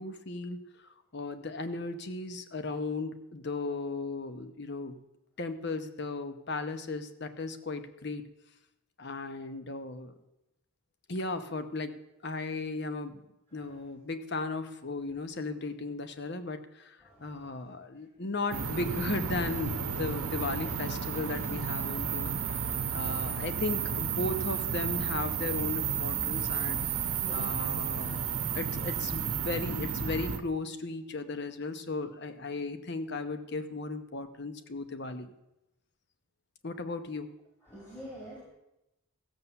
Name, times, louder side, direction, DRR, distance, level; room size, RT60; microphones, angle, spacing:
voice 1, 0.0-5.0 5.4-8.2 9.0-10.1 11.1-13.2 13.5-35.3 36.6-37.3, left 3 dB, 50° left, 9 dB, 0.9 m, -36 dB
voice 2, 17.0-17.5 20.6-20.7 27.1-27.5 37.7-38.4, equal, 10° left, -5 dB, 2.5 m, -48 dB
sound 1, 18.5-30.4, right 7 dB, 75° right, 0.9 m, -32 dB
14.5 x 7.1 x 6.9 m, 0.93 s
head